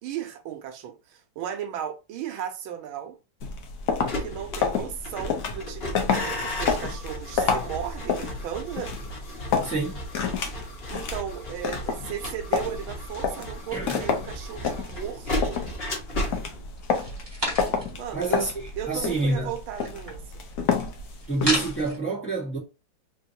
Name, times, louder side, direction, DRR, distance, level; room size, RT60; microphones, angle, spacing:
voice 1, 0.0-3.2 4.2-8.9 10.9-15.6 18.0-18.3 18.8-20.4, right 9 dB, 80° right, 1.5 m, -36 dB
sound 1, 3.4-21.9, left 6 dB, 70° left, 0.8 m, -30 dB
sound 2, 3.9-20.9 21.2-21.6, left 1 dB, 35° left, 1.4 m, -36 dB
voice 2, 9.6-10.0 13.7-13.9 18.1-19.5 21.3-22.6, right 3 dB, 5° left, 1.2 m, -27 dB
sound 3, 13.9-15.2 15.6-16.3 16.8-18.1 18.4-18.5 18.7-22.0, equal, 15° right, 1.5 m, -35 dB
3.8 x 2.5 x 2.7 m
omnidirectional pair, 2.2 m